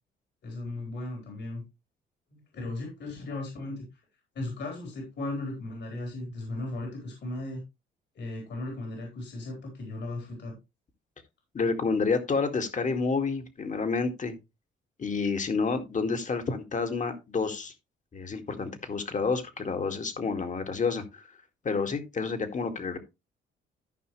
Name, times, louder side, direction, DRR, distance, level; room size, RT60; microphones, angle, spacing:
voice 1, 0.4-1.6 2.3-4.0 4.3-7.6 8.1-10.6, left 2 dB, 60° left, 1 dB, 4.5 m, -36 dB
voice 2, 11.5-14.4 15.0-17.7 18.1-21.2 21.6-23.0, left 4 dB, 40° left, 7 dB, 2.2 m, -29 dB
14.0 x 5.6 x 3.2 m, 0.24 s
cardioid pair, 90°, 20 cm